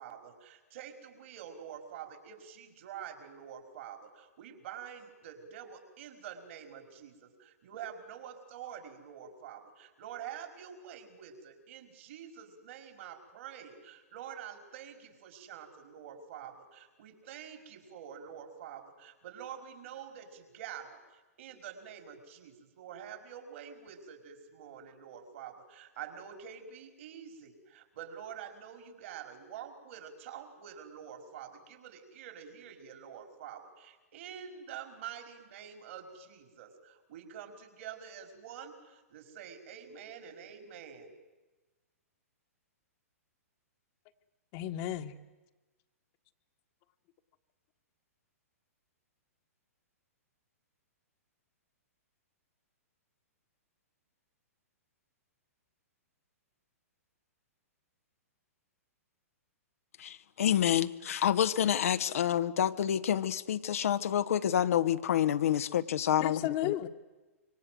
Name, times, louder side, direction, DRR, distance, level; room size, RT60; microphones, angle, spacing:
voice 1, 0.0-41.1, right 8 dB, 55° right, 5.2 m, -47 dB
voice 2, 44.5-45.1 66.2-66.9, left 13 dB, 40° left, 1.7 m, -33 dB
voice 3, 60.0-66.7, left 10 dB, 65° left, 1.3 m, -28 dB
26.0 x 25.0 x 7.9 m
hypercardioid pair, 120°, 8 cm